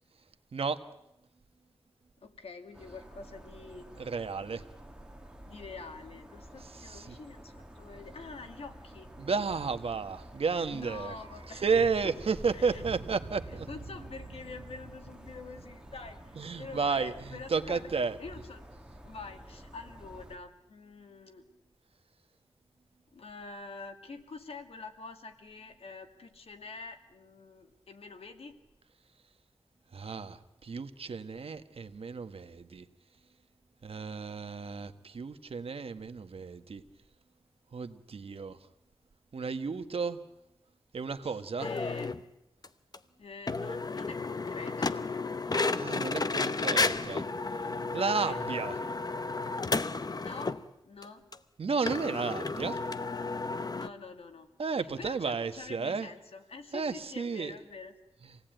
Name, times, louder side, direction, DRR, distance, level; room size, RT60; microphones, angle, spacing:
voice 1, 2.2-4.1 4.8-4.9 5.5-9.1 10.7-11.6 12.0-12.1 12.5-12.8 13.5-16.2 16.5-17.9 18.2-18.7 19.0-21.4 23.1-28.6 41.2-42.1 43.2-45.1 48.2-48.4 50.0-50.6 50.8-51.3 53.7-54.5 54.8-57.9, left 4 dB, 90° left, 6 dB, 2.3 m, -46 dB
sound 1, 2.7-20.4, equal, 10° right, 2.5 m, -50 dB
voice 2, 4.0-4.6 6.8-7.1 9.2-11.1 11.6-13.7 16.4-18.2 29.9-32.8 33.8-36.8 37.7-38.6 39.3-40.2 40.9-41.7 45.8-47.2 47.9-48.7 51.6-52.8 54.6-56.1 56.7-57.5, right 5 dB, 80° right, 9 dB, 1.3 m, -32 dB
sound 2, 10.2-18.2 18.4-18.5, right 4 dB, 50° right, 0.9 m, -50 dB
sound 3, 41.6-42.2 42.6-42.7 42.9-43.0 43.5-50.6 51.0-51.1 51.3-51.4 51.9-53.9, left 3 dB, 40° left, 0.8 m, -32 dB
26.5 x 17.5 x 9.0 m, 0.87 s
wide cardioid pair, 95°, 10 cm